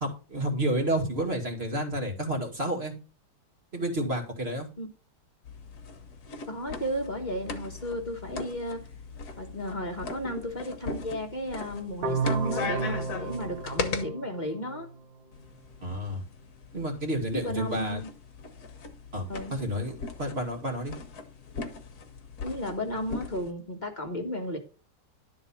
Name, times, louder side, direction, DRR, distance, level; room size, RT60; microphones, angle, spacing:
voice 1, 0.0-2.9 3.7-4.7 15.8-16.2 16.7-18.0 19.1-21.0, right 1 dB, 30° right, 2 dB, 2.3 m, -30 dB
sound 1, 5.4-14.0 15.3-23.5, left 4 dB, 55° left, 1.7 m, -39 dB
voice 2, 6.5-8.8 9.4-14.9 17.3-18.1 19.3-19.5 22.4-24.6, equal, 25° left, 2 dB, 1.5 m, -34 dB
sound 2, 12.0-15.0, right 4 dB, 90° right, 2.0 m, -32 dB
12.0 x 4.1 x 7.2 m, 0.36 s
omnidirectional pair, 2.0 m